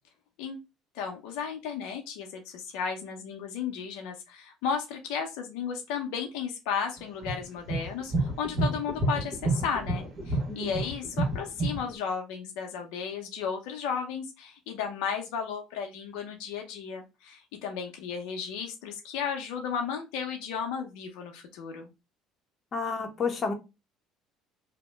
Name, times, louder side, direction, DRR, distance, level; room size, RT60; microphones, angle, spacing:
voice 1, 0.9-21.9, left 6 dB, 80° left, 0.6 m, -34 dB
sound 1, 7.2-11.9, right 2 dB, 40° right, 1.2 m, -28 dB
voice 2, 22.7-23.5, left 4 dB, 40° left, 0.8 m, -30 dB
2.8 x 2.1 x 3.2 m
supercardioid pair, 85°, 0 cm